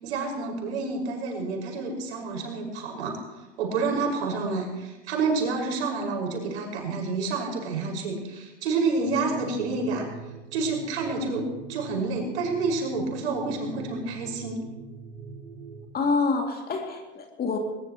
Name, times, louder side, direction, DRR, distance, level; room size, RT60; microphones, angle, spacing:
voice 1, 0.0-10.1 10.5-14.6, right 3 dB, 65° right, 1 dB, 5.7 m, -29 dB
sound 1, 9.0-15.9, right 5 dB, 90° right, 2.3 m, -43 dB
voice 2, 15.9-17.6, left 4 dB, 25° left, 3 dB, 2.6 m, -26 dB
21.0 x 21.0 x 3.1 m, 1.1 s
hypercardioid pair, 95°, 36 cm